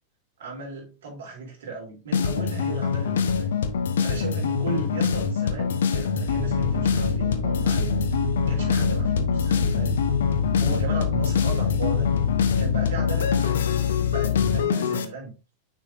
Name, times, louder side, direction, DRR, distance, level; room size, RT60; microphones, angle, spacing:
voice 1, 0.4-3.5 4.0-8.0 8.5-10.0 10.6-12.1 12.6-13.6 14.0-15.3, right 4 dB, 60° right, -1 dB, 3.3 m, -36 dB
sound 1, 2.1-15.0, left 6 dB, 65° left, 0.7 m, -25 dB
sound 2, 6.2-14.6, left 7 dB, 80° left, 2.6 m, -27 dB
6.3 x 6.1 x 2.6 m, 0.31 s
figure-of-eight pair, 90°, 0 cm